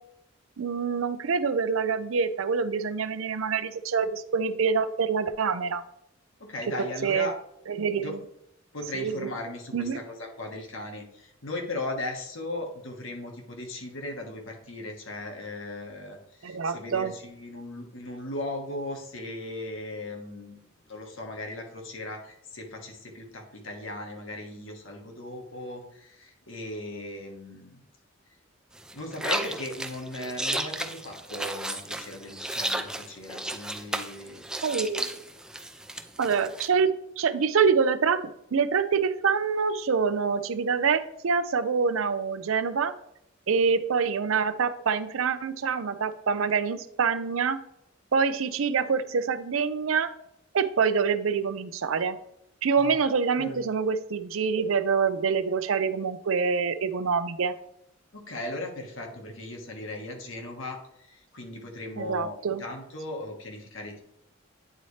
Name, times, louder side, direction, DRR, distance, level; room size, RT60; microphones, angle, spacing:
voice 1, 0.6-5.8 7.0-7.3 7.7-8.2 8.9-9.3 9.7-10.0 16.4-17.1 34.6-35.1 36.2-38.2 38.5-42.9 43.5-47.6 48.1-50.1 50.5-52.2 52.6-57.5 62.0-62.6, right 5 dB, 85° right, 12 dB, 0.5 m, -26 dB
voice 2, 6.4-7.3 7.9-8.1 8.7-27.9 28.9-34.5 52.8-53.0 53.4-53.6 58.1-64.0, left 2 dB, 70° left, 2 dB, 1.4 m, -37 dB
sound 1, 28.8-36.7, right 1 dB, 5° right, 0.4 m, -34 dB
9.0 x 4.2 x 3.2 m, 0.76 s
head